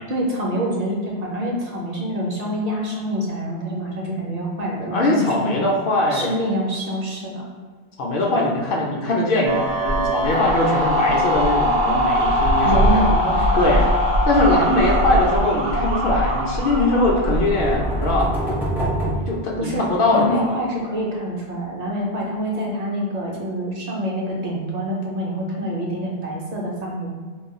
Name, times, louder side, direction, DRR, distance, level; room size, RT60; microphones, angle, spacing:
voice 1, 0.1-5.6 6.1-7.4 12.6-13.8 19.6-27.1, equal, 50° right, -2 dB, 0.6 m, -26 dB
voice 2, 4.8-6.3 8.0-13.2 13.5-13.8 14.3-18.6 18.8-20.6, left 2 dB, 65° left, -1 dB, 0.7 m, -21 dB
sound 1, 9.5-18.5, equal, 80° right, 0.8 m, -21 dB
sound 2, 17.2-20.1, right 1 dB, 5° right, 0.4 m, -26 dB
2.3 x 2.2 x 3.7 m, 1.5 s
omnidirectional pair, 1.1 m